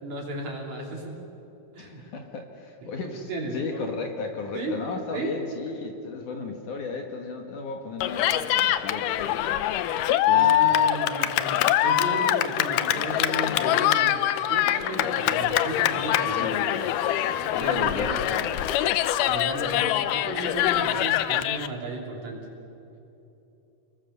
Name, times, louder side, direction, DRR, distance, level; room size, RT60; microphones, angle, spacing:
voice 1, 0.0-1.1 1.7-2.0 2.8-3.0 3.3-3.8 4.5-4.7 5.1-5.4 10.3-16.8 17.6-18.2 19.3-22.4, right 2 dB, 50° right, -1 dB, 4.2 m, -34 dB
voice 2, 1.8-9.4 10.3-10.5 16.3-16.7 17.5-18.5, left 4 dB, 60° left, 3 dB, 2.8 m, -34 dB
Cheering, 8.0-21.7, left 12 dB, 80° left, 2.0 m, -24 dB
29.0 x 21.0 x 6.8 m, 3.0 s
omnidirectional pair, 4.5 m